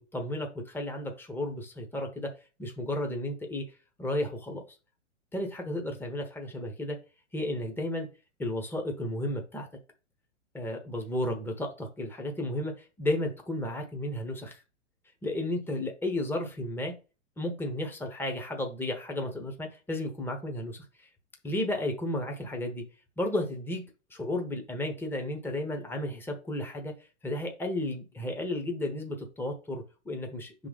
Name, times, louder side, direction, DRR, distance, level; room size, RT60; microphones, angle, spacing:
voice 1, 0.0-2.3 2.6-3.7 4.0-4.6 5.3-7.0 7.3-8.1 8.4-9.7 10.5-14.6 15.2-16.9 17.4-21.1 21.4-22.8 23.2-26.9 27.2-30.7, left 1 dB, 5° left, 3 dB, 1.1 m, -33 dB
4.8 x 3.9 x 5.2 m, 0.33 s
hypercardioid pair, 115°, 38 cm